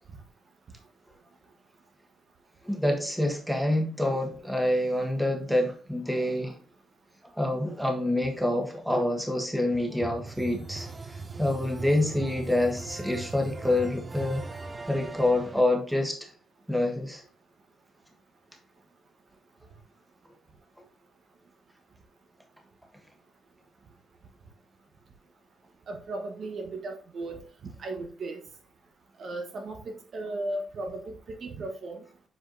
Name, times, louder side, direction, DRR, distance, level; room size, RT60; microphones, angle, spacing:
voice 1, 2.7-6.5 7.4-10.9 11.4-14.4 14.9-16.2 16.7-17.2, left 1 dB, ahead, 1.3 m, -27 dB
sound 1, 10.0-15.6, right 3 dB, 25° right, 0.5 m, -39 dB
voice 2, 25.9-28.4 29.2-32.0, right 2 dB, 50° right, 1.0 m, -36 dB
7.7 x 4.8 x 2.6 m
cardioid pair, 120°, 0 cm